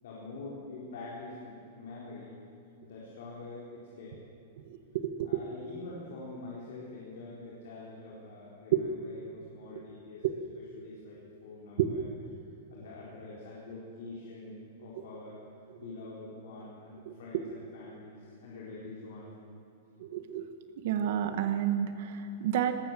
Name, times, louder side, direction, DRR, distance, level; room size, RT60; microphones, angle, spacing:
voice 1, 0.0-2.3 2.8-4.1 5.2-10.2 10.5-12.1 12.7-15.4 15.8-19.3, left 3 dB, 70° left, -5 dB, 4.3 m, -45 dB
voice 2, 4.9-5.3 8.7-8.8 10.2-10.3 11.8-11.9 17.1-17.2 20.0-20.5 20.8-22.7, right 10 dB, 55° right, 8 dB, 1.4 m, -29 dB
19.0 x 18.0 x 7.7 m, 2.8 s
supercardioid pair, 160°, 0 cm